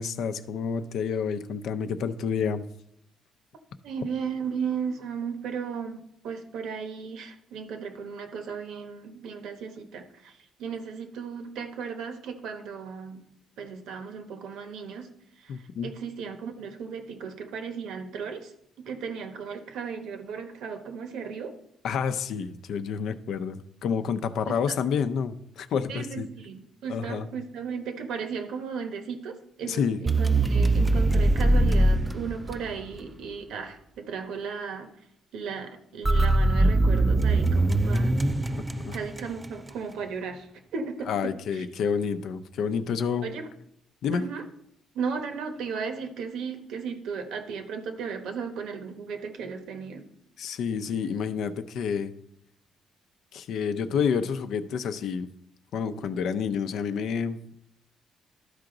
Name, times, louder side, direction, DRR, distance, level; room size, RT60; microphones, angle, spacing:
voice 1, 0.0-2.6 15.5-15.9 21.8-26.3 26.9-27.3 29.7-30.0 38.5-38.9 41.1-43.3 44.0-44.3 50.4-52.1 53.3-55.3 55.7-57.5, left 6 dB, 75° left, 10 dB, 0.6 m, -29 dB
voice 2, 3.8-13.3 13.6-15.1 15.4-18.5 18.8-21.5 24.5-24.8 25.9-34.9 35.3-38.1 38.9-41.6 43.2-43.5 44.1-44.4 44.9-50.1, right 6 dB, 85° right, 6 dB, 1.1 m, -35 dB
sound 1, 30.1-33.0 36.0-39.5, right 2 dB, 20° right, 0.4 m, -22 dB
12.5 x 4.8 x 3.9 m, 0.74 s
cardioid pair, 90°, 0 cm